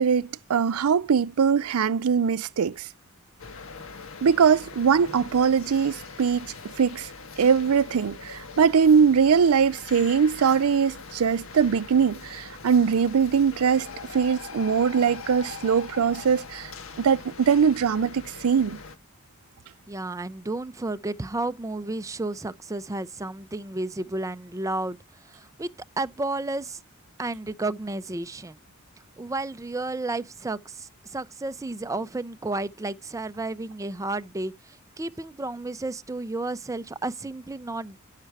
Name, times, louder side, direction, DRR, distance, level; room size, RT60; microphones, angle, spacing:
voice 1, 0.0-2.9 4.2-7.1 7.4-13.9 14.1-16.7 17.0-18.8, right 6 dB, 85° right, 0.4 m, -22 dB
sound 1, 3.4-19.0, left 4 dB, 65° left, 1.1 m, -42 dB
voice 2, 19.9-25.0 25.3-25.7 26.0-26.8 27.2-28.6 29.2-38.0, right 2 dB, 15° right, 0.4 m, -32 dB
10.5 x 6.6 x 4.6 m
head